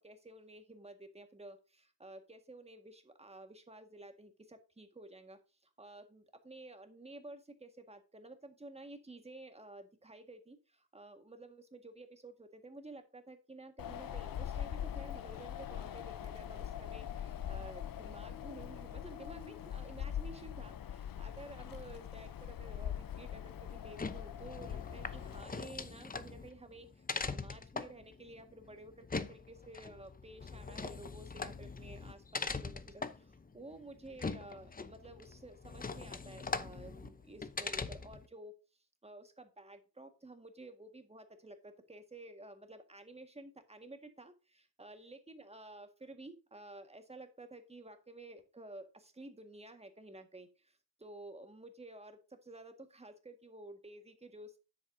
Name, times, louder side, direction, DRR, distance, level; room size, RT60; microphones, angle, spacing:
voice 1, 0.0-5.4 5.8-38.5 39.0-50.7 51.0-54.6, right 2 dB, 15° right, 7 dB, 1.8 m, -52 dB
Wind, 13.8-25.4, left 9 dB, 60° left, 0.8 m, -42 dB
sound 1, 23.9-38.3, left 4 dB, 25° left, 0.8 m, -42 dB
9.8 x 8.2 x 2.7 m, 0.31 s
wide cardioid pair, 140°, 38 cm